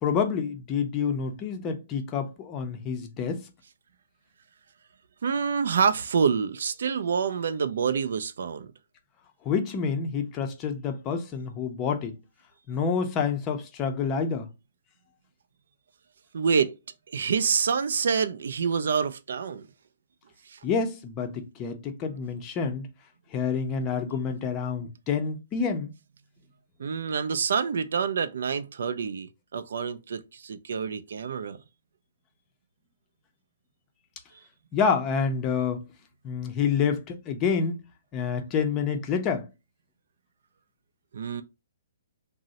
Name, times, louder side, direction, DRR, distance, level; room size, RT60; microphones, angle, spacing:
voice 1, 0.0-3.5 9.4-12.2 12.7-14.5 20.6-22.9 23.3-25.9 34.7-35.9 36.2-37.8 38.1-39.5, left 6 dB, 25° left, 0.5 m, -28 dB
voice 2, 5.2-8.7 16.3-16.7 17.1-19.7 20.5-20.6 26.8-31.6 41.1-41.4, right 6 dB, 70° right, 0.3 m, -27 dB
2.6 x 2.0 x 3.9 m
hypercardioid pair, 150°, 0 cm